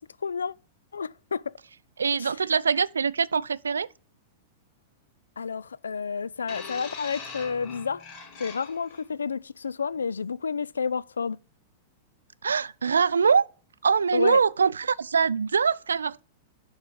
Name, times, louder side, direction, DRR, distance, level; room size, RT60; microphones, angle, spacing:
voice 1, 0.2-0.5 0.9-1.5 2.2-2.4 5.4-8.0 8.4-11.4 14.1-14.4, left 5 dB, 90° left, 0.3 m, -30 dB
voice 2, 2.0-3.9 12.4-13.4 13.8-16.2, right 6 dB, 90° right, 0.3 m, -23 dB
sound 1, 6.5-9.0 9.9-10.1, left 5 dB, 40° left, 2.5 m, -42 dB
10.5 x 4.0 x 5.0 m
hypercardioid pair, 110°, 0 cm